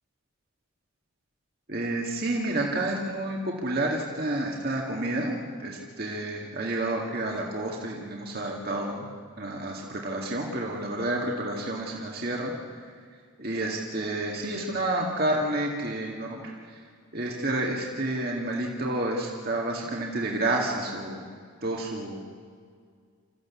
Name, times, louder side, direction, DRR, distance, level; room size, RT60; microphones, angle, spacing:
voice 1, 1.7-9.1 9.4-12.5 13.4-16.6 17.1-21.2 21.6-22.2, right 1 dB, 45° right, -1 dB, 2.0 m, -30 dB
26.5 x 15.0 x 8.4 m, 2.1 s
head